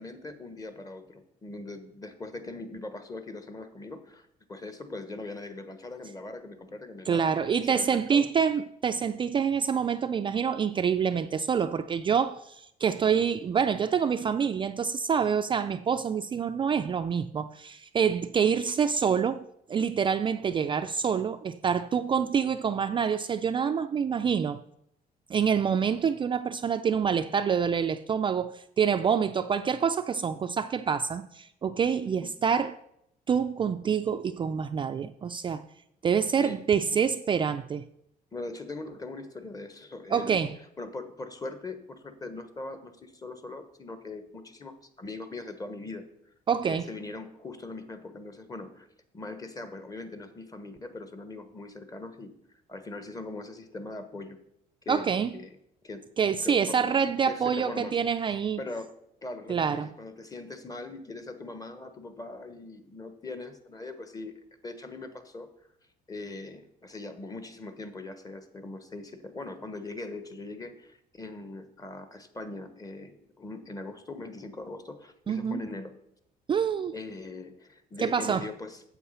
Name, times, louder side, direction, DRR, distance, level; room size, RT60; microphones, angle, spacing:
voice 1, 0.0-7.3 7.6-8.3 22.1-22.3 32.0-32.3 36.4-36.6 38.3-40.4 40.8-46.0 46.6-48.9 49.1-52.4 52.7-54.4 54.8-55.6 55.8-56.0 56.4-56.9 57.2-58.0 58.3-58.9 59.2-64.3 64.6-65.5 66.1-76.0 76.9-78.8, left 2 dB, 20° left, 1.2 m, -41 dB
voice 2, 7.1-19.4 19.7-24.6 25.3-32.7 33.3-35.6 36.0-37.8 40.1-40.5 46.5-46.8 54.9-55.3 56.2-58.6 59.5-59.9 75.3-75.6 76.5-76.9 78.0-78.5, right 7 dB, 30° right, 0.4 m, -26 dB
8.3 x 7.5 x 5.6 m
cardioid pair, 110°, 17 cm